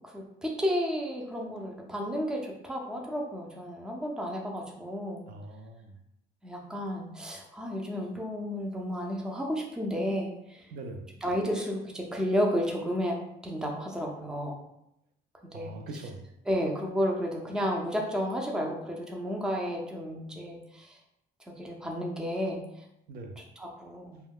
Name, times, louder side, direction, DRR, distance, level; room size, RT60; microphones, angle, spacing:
voice 1, 0.0-5.2 6.4-10.7 11.2-14.6 15.4-15.8 16.5-21.0 21.5-22.6 23.6-24.2, equal, 5° right, 0 dB, 0.4 m, -32 dB
voice 2, 5.2-6.0 10.7-11.1 15.5-16.2 23.1-23.4, right 2 dB, 65° right, 4 dB, 0.5 m, -42 dB
2.3 x 2.2 x 3.4 m, 0.81 s
cardioid pair, 110°, 17 cm